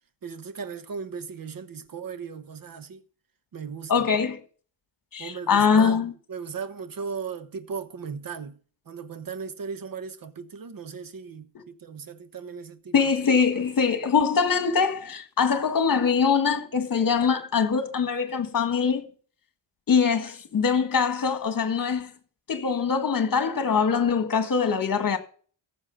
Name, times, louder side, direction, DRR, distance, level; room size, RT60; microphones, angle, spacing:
voice 1, 0.2-3.0 3.5-4.1 5.2-6.0 6.3-8.6 8.9-12.9, right 6 dB, 45° right, 1.1 m, -37 dB
voice 2, 3.9-4.4 5.1-6.1 12.9-19.0 19.9-22.1 22.5-25.2, left 6 dB, 45° left, 1.7 m, -23 dB
15.0 x 6.4 x 5.3 m
wide cardioid pair, 140°, 46 cm